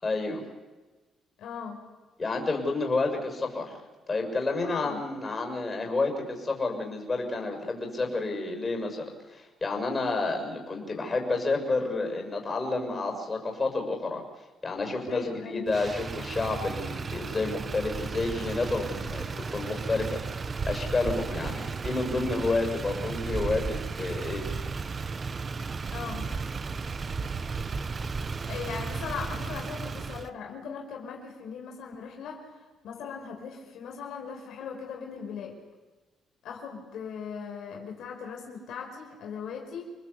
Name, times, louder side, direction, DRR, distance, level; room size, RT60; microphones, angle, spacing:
voice 1, 0.0-0.4 2.2-3.8 4.1-14.2 14.6-24.4, left 3 dB, 30° left, 3 dB, 6.6 m, -30 dB
voice 2, 1.4-1.8 4.6-5.0 15.1-15.7 21.3-21.5 25.9-26.4 28.4-32.5 32.8-35.6 36.4-39.9, left 6 dB, 75° left, 1 dB, 4.8 m, -39 dB
Motor vehicle (road), 15.7-30.3, right 4 dB, 40° right, 1.0 m, -34 dB
28.0 x 20.0 x 8.4 m, 1.2 s
cardioid pair, 90°, 0 cm